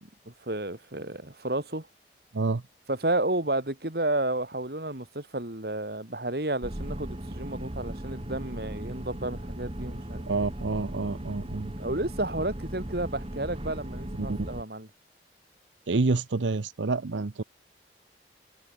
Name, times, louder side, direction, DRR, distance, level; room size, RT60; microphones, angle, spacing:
voice 1, 0.3-1.9 2.9-10.3 11.8-14.9, right 2 dB, 55° right, 2.7 m, -31 dB
sound 1, 6.6-14.6, right 1 dB, 30° right, 1.7 m, -37 dB
voice 2, 10.3-11.7 14.3-14.4 15.9-17.4, right 3 dB, 90° right, 0.7 m, -28 dB
head